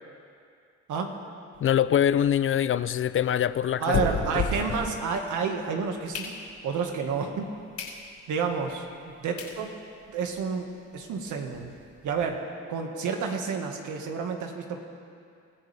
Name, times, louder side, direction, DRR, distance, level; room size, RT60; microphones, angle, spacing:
sound 1, 1.5-5.5 5.9-6.8 7.3-7.4 7.7-8.0 8.4-8.5 9.1-9.2 9.4-9.6 10.0-10.1 10.3-10.4 10.7-10.8 11.1-12.2, left 4 dB, 70° left, 5.2 m, -34 dB
voice 1, 1.6-4.0 4.3-4.4, left 9 dB, 45° left, 15 dB, 0.5 m, -24 dB
voice 2, 3.8-6.3 6.6-7.5 8.3-9.7 10.1-11.7 12.0-12.4 12.7-14.8, right 5 dB, 80° right, 3 dB, 1.8 m, -30 dB
25.0 x 15.0 x 3.5 m, 2.4 s
cardioid pair, 90°, 30 cm